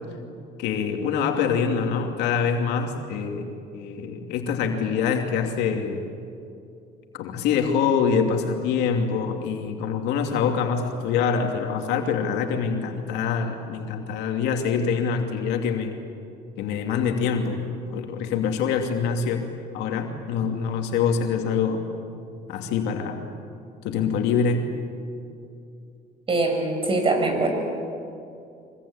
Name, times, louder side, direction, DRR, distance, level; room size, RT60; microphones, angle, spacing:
voice 1, 0.6-3.5 3.7-6.0 7.1-16.0 16.6-17.6 17.9-19.4 19.7-21.8 22.5-23.2 23.8-24.8, left 6 dB, 90° left, 3 dB, 2.7 m, -25 dB
voice 2, 26.3-27.5, right 2 dB, 30° right, 4 dB, 6.1 m, -22 dB
24.5 x 24.0 x 8.8 m, 2.5 s
cardioid pair, 110°, 17 cm